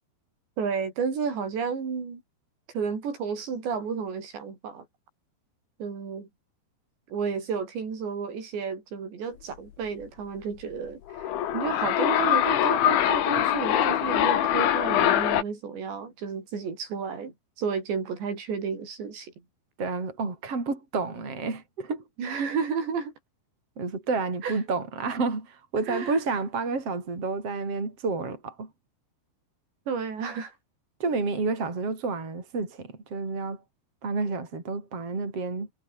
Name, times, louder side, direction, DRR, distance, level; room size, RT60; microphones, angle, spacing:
voice 1, 0.6-2.2 2.7-4.9 5.8-6.3 7.1-19.3 22.2-23.1 24.4-24.5 25.9-26.2 29.9-30.5, right 6 dB, 65° right, 8.4 m, -32 dB
sound 1, 11.1-15.4, left 11 dB, 75° left, 4.5 m, -23 dB
voice 2, 19.8-22.0 23.8-28.7 31.0-33.6 34.0-35.7, right 4 dB, 30° right, 6.4 m, -30 dB
omnidirectional pair, 5.4 m